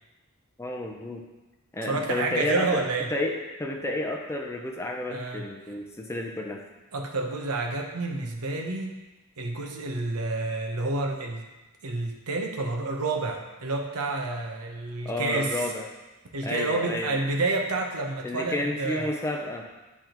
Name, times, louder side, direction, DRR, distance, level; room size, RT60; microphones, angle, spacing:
voice 1, 0.6-1.2 1.7-2.7 3.1-6.6 15.0-15.8 16.4-17.2 18.2-19.6, left 2 dB, 10° left, 1 dB, 0.5 m, -31 dB
voice 2, 1.8-3.1 5.1-5.4 6.9-8.9 9.4-11.5 11.8-15.6 16.3-19.1, right 3 dB, 75° right, 2 dB, 0.8 m, -29 dB
10.0 x 3.5 x 3.0 m, 1.1 s
head